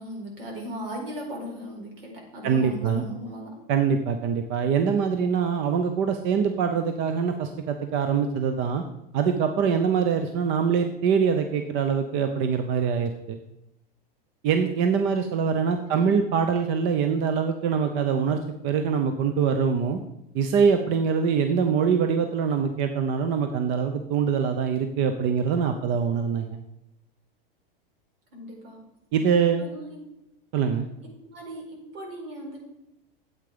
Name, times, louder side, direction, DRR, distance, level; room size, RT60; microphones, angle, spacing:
voice 1, 0.0-3.5 15.9-16.1 28.3-28.8 29.6-30.0 31.3-32.6, equal, 75° right, 0 dB, 4.6 m, -37 dB
voice 2, 2.4-3.0 3.7-8.8 9.1-13.4 14.4-20.0 20.3-26.6 29.1-29.7 30.5-30.9, right 6 dB, 40° right, 7 dB, 0.8 m, -24 dB
9.2 x 8.2 x 5.1 m, 0.86 s
hypercardioid pair, 130°, 29 cm